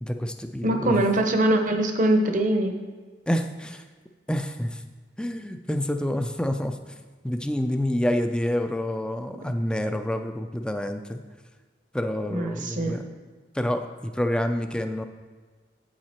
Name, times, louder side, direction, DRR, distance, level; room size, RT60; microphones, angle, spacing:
voice 1, 0.0-1.0 3.3-3.8 4.3-4.8 5.2-6.8 7.2-11.2 11.9-13.0 13.5-15.0, left 1 dB, 5° left, 7 dB, 0.4 m, -28 dB
voice 2, 0.6-2.7 12.3-13.0, right 1 dB, 40° right, 5 dB, 0.8 m, -22 dB
8.4 x 7.6 x 4.3 m, 1.4 s
head